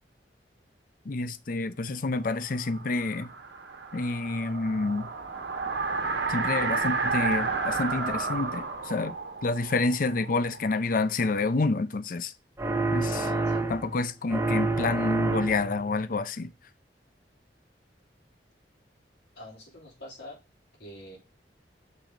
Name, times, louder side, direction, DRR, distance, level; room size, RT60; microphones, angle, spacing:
voice 1, 1.1-3.3 3.9-5.1 6.3-9.1 9.4-12.3 12.9-13.3 13.7-16.5, left 3 dB, 50° left, 0.5 m, -28 dB
sound 1, 2.4-11.1, right 4 dB, 75° right, 1.3 m, -32 dB
sound 2, 12.6-14.0 14.3-15.8, right 3 dB, 15° right, 0.7 m, -28 dB
voice 2, 13.1-13.6 19.3-20.4 20.8-21.2, left 2 dB, 75° left, 3.3 m, -44 dB
6.8 x 4.6 x 3.8 m
head